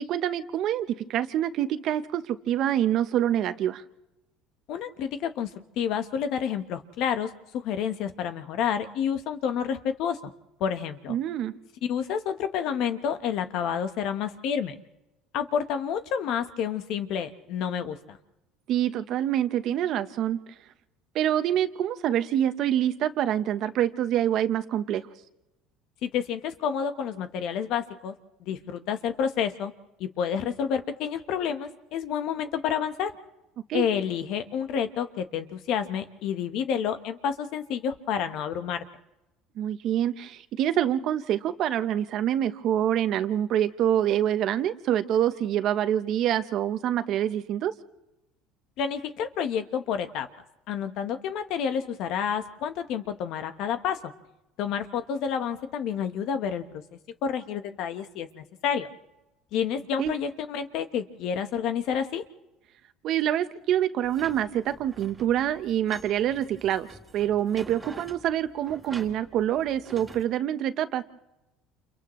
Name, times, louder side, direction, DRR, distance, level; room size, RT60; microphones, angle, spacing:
voice 1, 0.0-3.8 11.1-11.5 18.7-20.4 21.1-25.0 33.7-33.9 39.6-47.7 60.0-60.1 63.0-66.9 67.1-71.0, right 11 dB, 55° right, 10 dB, 1.0 m, -26 dB
voice 2, 4.7-5.5 5.8-10.2 10.6-11.2 11.9-14.7 15.3-18.2 26.0-28.1 28.4-29.7 30.0-33.1 33.7-38.8 48.8-50.3 50.7-54.1 54.6-56.6 57.2-58.9 59.5-62.2, left 8 dB, 60° left, 9 dB, 1.2 m, -29 dB
sound 1, 64.0-70.2, right 2 dB, 15° right, 2.2 m, -47 dB
29.5 x 28.5 x 3.2 m, 0.97 s
cardioid pair, 125°, 0 cm